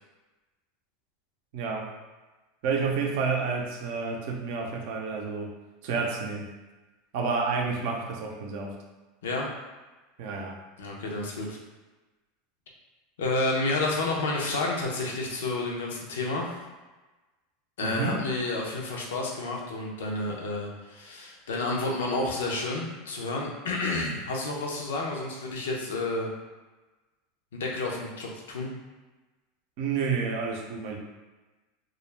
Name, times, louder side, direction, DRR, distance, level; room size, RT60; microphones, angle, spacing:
voice 1, 1.5-1.9 2.6-5.5 5.8-6.5 7.1-8.8 10.2-10.6 17.8-18.3 29.8-31.0, right 5 dB, 65° right, 0 dB, 0.5 m, -30 dB
voice 2, 10.8-11.6 13.2-16.6 17.8-26.3 27.5-28.7, left 2 dB, 90° left, -1 dB, 0.5 m, -30 dB
2.3 x 2.0 x 3.1 m, 1.2 s
supercardioid pair, 110°, 0 cm